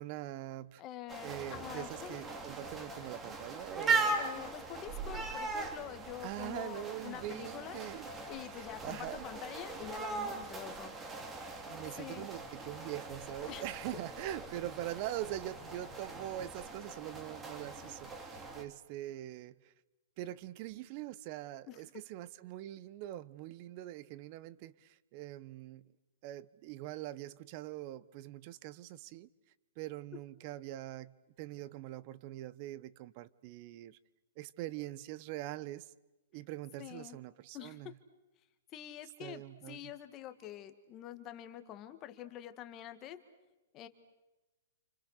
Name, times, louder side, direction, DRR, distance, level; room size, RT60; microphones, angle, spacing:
voice 1, 0.0-0.8 1.2-4.2 6.2-8.1 8.5-9.3 11.4-19.7 20.2-25.9 26.2-29.3 29.8-34.0 34.4-35.9 36.3-37.9 39.2-39.8, right 14 dB, 40° right, 1.1 m, -43 dB
voice 2, 0.8-2.2 4.2-7.8 8.3-10.9 12.0-12.3 13.5-13.7 21.7-21.8 36.8-37.2 37.5-37.8 38.7-43.2 43.7-43.9, left 12 dB, 30° left, 1.9 m, -46 dB
sound 1, 1.1-18.6, right 3 dB, 15° right, 3.2 m, -40 dB
29.5 x 29.0 x 6.6 m
hypercardioid pair, 145°, 0 cm